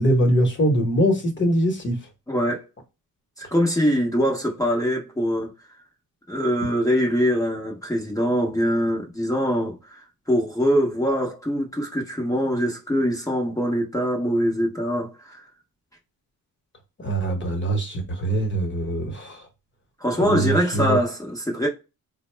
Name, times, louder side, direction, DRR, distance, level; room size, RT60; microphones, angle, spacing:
voice 1, 0.0-2.0 17.0-19.4 20.2-21.0, right 1 dB, 30° left, 1.1 m, -22 dB
voice 2, 2.3-2.6 3.4-5.5 6.3-15.4 20.0-21.7, equal, 10° left, 0.8 m, -23 dB
4.0 x 2.1 x 3.3 m
wide cardioid pair, 125°, 35 cm